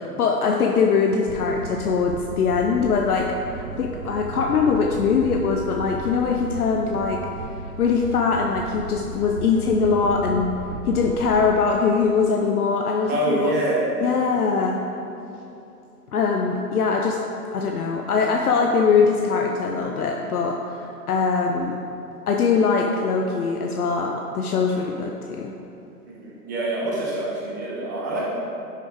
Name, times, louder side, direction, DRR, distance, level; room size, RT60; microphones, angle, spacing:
voice 1, 0.2-7.2 7.8-10.5 10.9-13.5 14.0-14.8 16.1-17.2 17.5-21.8 22.3-25.5, left 5 dB, 65° left, 1 dB, 0.8 m, -22 dB
sound 1, 1.3-11.5, right 4 dB, 70° right, 1.0 m, -35 dB
voice 2, 13.1-13.8 26.1-28.3, right 1 dB, 15° right, -5 dB, 0.5 m, -25 dB
10.5 x 6.1 x 3.5 m, 2.8 s
hypercardioid pair, 130°, 47 cm